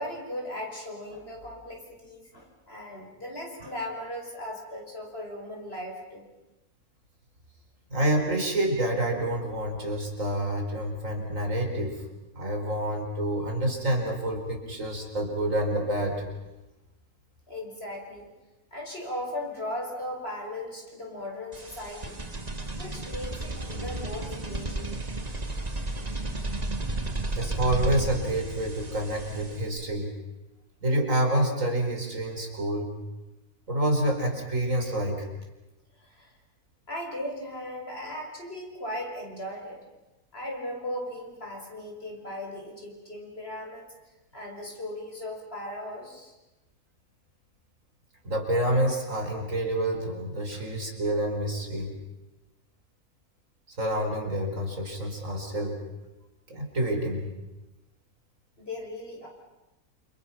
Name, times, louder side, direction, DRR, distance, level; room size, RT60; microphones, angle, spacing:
voice 1, 0.0-6.2 17.5-18.3 18.7-22.2 22.8-25.0 36.0-36.3 36.9-39.8 40.3-43.9 44.3-46.3 50.5-50.6 58.6-59.3, left 1 dB, 40° left, 0 dB, 5.7 m, -37 dB
voice 2, 7.9-12.0 12.3-16.2 27.3-30.1 30.8-32.9 33.7-35.3 48.2-51.9 53.8-55.8 56.5-57.3, right 1 dB, 55° right, 3 dB, 4.9 m, -28 dB
sound 1, 21.5-29.8, right 2 dB, 25° right, 1.7 m, -33 dB
29.0 x 28.5 x 5.9 m, 1.0 s
omnidirectional pair, 1.6 m